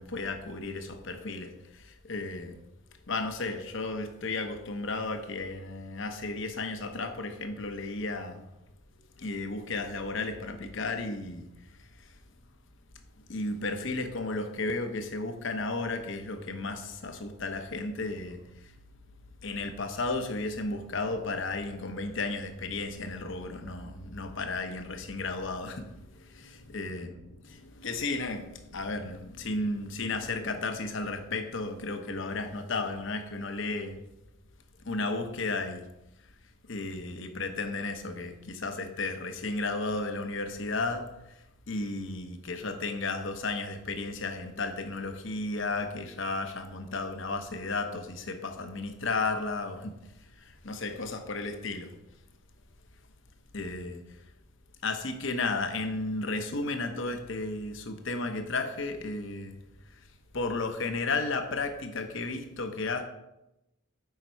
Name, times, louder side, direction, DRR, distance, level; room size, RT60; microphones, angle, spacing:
voice 1, 0.0-2.6 3.1-8.4 9.2-11.5 13.3-18.4 19.4-34.0 34.8-35.8 36.7-41.1 41.7-49.9 50.4-51.9 53.5-54.0 54.8-59.6 60.3-63.0, left 3 dB, 60° left, 7 dB, 0.8 m, -33 dB
7.2 x 5.2 x 4.5 m, 0.91 s
head